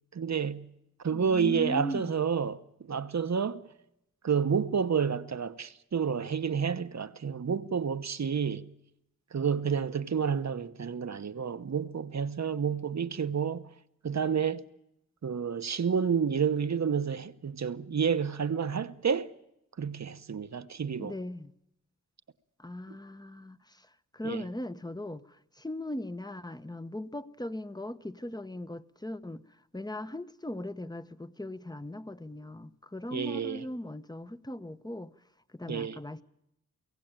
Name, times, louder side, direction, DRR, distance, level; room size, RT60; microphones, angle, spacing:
voice 1, 0.1-0.7 1.0-3.6 4.2-8.7 9.3-13.7 14.0-14.6 15.2-19.3 19.8-21.1 24.2-24.4 33.1-33.6 35.7-36.0, right 6 dB, 55° right, 1.0 m, -30 dB
voice 2, 1.1-2.2 21.0-21.5 22.6-23.9 24.1-29.4 29.7-35.1 35.5-36.2, left 1 dB, 15° left, 0.9 m, -39 dB
24.0 x 16.5 x 8.9 m
cardioid pair, 55°, 32 cm